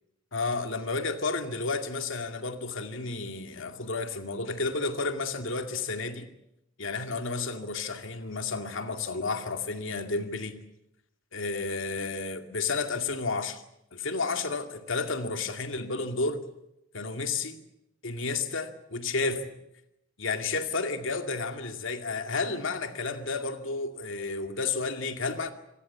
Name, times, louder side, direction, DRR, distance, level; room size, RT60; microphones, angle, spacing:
voice 1, 0.3-6.3 6.8-10.6 11.3-13.6 13.9-16.4 16.9-17.6 18.0-19.5 20.2-25.5, left 3 dB, 70° left, 2.3 m, -31 dB
26.0 x 18.5 x 8.4 m
head